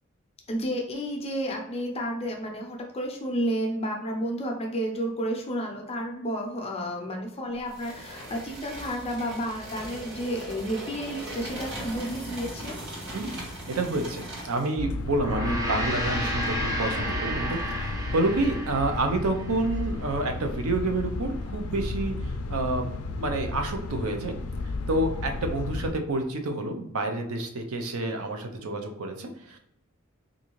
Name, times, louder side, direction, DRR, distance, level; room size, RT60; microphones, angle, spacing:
voice 1, 0.5-12.8, equal, 30° left, 1 dB, 0.6 m, -31 dB
sound 1, 7.7-14.8, right 1 dB, 55° right, 1.2 m, -39 dB
voice 2, 13.7-22.1 22.5-22.9 23.2-24.3 24.9-29.6, right 2 dB, 80° right, 4 dB, 0.6 m, -28 dB
sound 2, 14.8-25.9, left 3 dB, 85° left, 0.4 m, -33 dB
Gong, 15.1-19.7, equal, 15° right, 0.5 m, -32 dB
3.7 x 2.6 x 3.0 m, 0.78 s
head